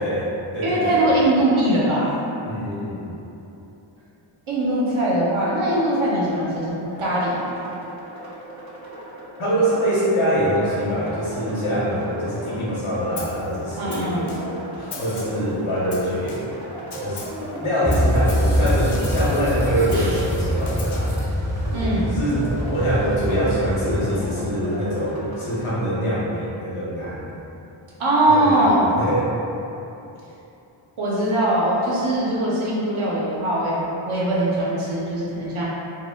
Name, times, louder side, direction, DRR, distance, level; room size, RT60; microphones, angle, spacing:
voice 1, 0.0-1.1 2.4-3.1 9.4-14.2 15.0-16.4 17.0-17.3 17.6-21.1 22.0-27.3 28.3-29.3, equal, 90° left, -7 dB, 0.8 m, -24 dB
voice 2, 0.6-2.1 4.5-7.4 13.8-14.3 14.7-14.9 19.9-20.2 21.7-22.1 28.0-28.8 31.0-35.6, right 1 dB, 75° right, -7 dB, 0.6 m, -21 dB
sound 1, 6.9-25.5, right 1 dB, 35° right, 0.6 m, -35 dB
Snare drum, 13.2-13.5 13.9-14.6 14.9-15.5 15.9-16.6 16.9-17.4 17.9-19.4 19.9-21.1, left 3 dB, 60° left, 0.5 m, -38 dB
sound 2, 17.8-24.0, equal, 5° left, 0.4 m, -24 dB
2.1 x 2.1 x 3.3 m, 2.9 s
wide cardioid pair, 60°, 48 cm